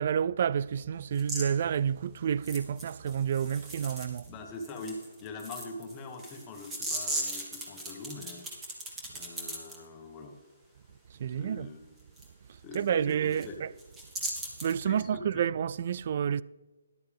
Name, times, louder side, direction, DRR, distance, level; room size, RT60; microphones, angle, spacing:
voice 1, 0.0-4.2 11.2-11.7 12.7-13.7 14.6-16.4, right 8 dB, 45° right, 0.3 m, -29 dB
sound 1, 1.1-1.5 2.4-4.3 4.6-9.8 12.2-12.3 12.7-12.8 13.1-13.5 13.8-14.8, right 1 dB, 10° right, 1.9 m, -38 dB
voice 2, 4.3-8.5 9.1-10.4 11.2-11.8 12.6-13.5 14.8-15.4, left 3 dB, 20° left, 1.5 m, -43 dB
13.0 x 11.5 x 3.5 m
hypercardioid pair, 155°, 0 cm